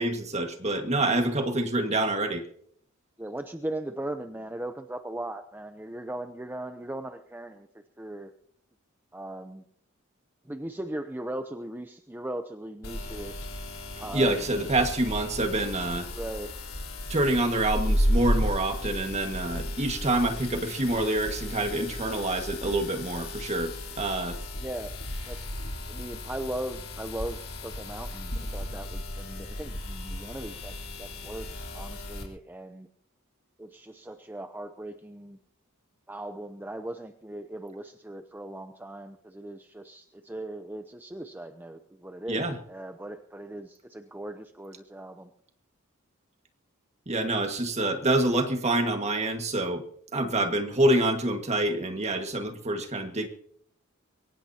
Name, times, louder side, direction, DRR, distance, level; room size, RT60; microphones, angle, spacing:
voice 1, 0.0-2.4 14.1-16.1 17.1-24.4 42.3-42.6 47.1-49.8 50.1-53.3, right 1 dB, 30° right, 5 dB, 1.8 m, -27 dB
voice 2, 3.2-7.7 8.0-8.3 9.1-9.6 10.4-13.4 14.0-14.6 16.1-16.5 24.6-24.9 25.3-25.5 25.9-32.9 33.6-35.4 36.1-45.3, right 1 dB, 10° right, 7 dB, 0.7 m, -38 dB
sound 1, 12.8-32.2, left 1 dB, 75° left, 3.6 m, -34 dB
23.0 x 18.5 x 2.9 m, 0.66 s
head